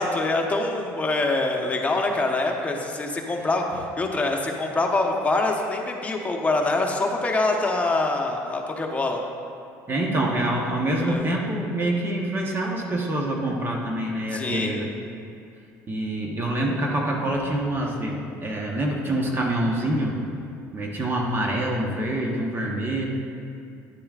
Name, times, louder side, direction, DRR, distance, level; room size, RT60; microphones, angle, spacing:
voice 1, 0.0-9.2 10.9-11.3 14.3-14.7, left 2 dB, 20° left, 1 dB, 1.1 m, -25 dB
voice 2, 9.9-14.9 15.9-20.2 20.7-23.1, right 1 dB, 35° right, -1 dB, 1.1 m, -26 dB
10.0 x 8.6 x 2.5 m, 2.5 s
supercardioid pair, 90°, 7 cm